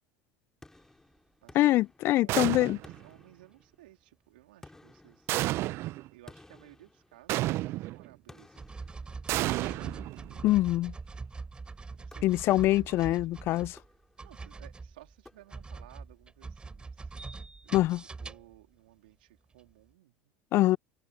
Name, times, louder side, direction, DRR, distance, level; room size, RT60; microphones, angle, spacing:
sound 1, 0.6-2.4 2.8-4.0 4.6-7.6 8.3-9.7 10.5-11.1 12.1-12.8 13.6-14.4 15.2-15.9, left 2 dB, 10° left, 3.2 m, -57 dB
voice 1, 1.5-2.8 10.4-10.9 12.2-13.8 17.7-18.0 20.5-20.8, left 16 dB, 50° left, 0.4 m, -24 dB
voice 2, 2.2-5.8 6.1-9.9 11.9-13.3 14.2-17.1 17.6-17.8 18.2-20.3, right 17 dB, 80° right, 3.3 m, -58 dB
sound 2, 2.3-3.0 5.3-6.1 7.3-8.1 9.3-10.5, right 17 dB, 55° right, 0.7 m, -31 dB
sound 3, 7.8-8.1 8.6-13.9 14.2-18.6 19.5-19.6, right 4 dB, 20° right, 3.8 m, -43 dB
hypercardioid pair, 85°, 5 cm